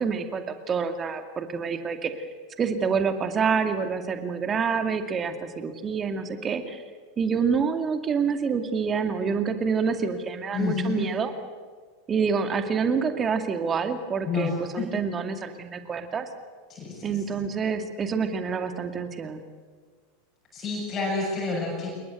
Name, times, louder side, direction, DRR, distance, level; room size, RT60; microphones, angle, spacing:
voice 1, 0.0-2.2 2.6-6.8 7.2-11.3 12.1-16.3 17.0-19.4, right 6 dB, 25° right, 8 dB, 2.4 m, -27 dB
voice 2, 10.5-11.1 14.3-14.9 16.7-17.4 20.5-21.9, left 4 dB, 30° left, -3 dB, 7.2 m, -29 dB
27.5 x 22.0 x 8.1 m, 1.5 s
figure-of-eight pair, 85°, 0 cm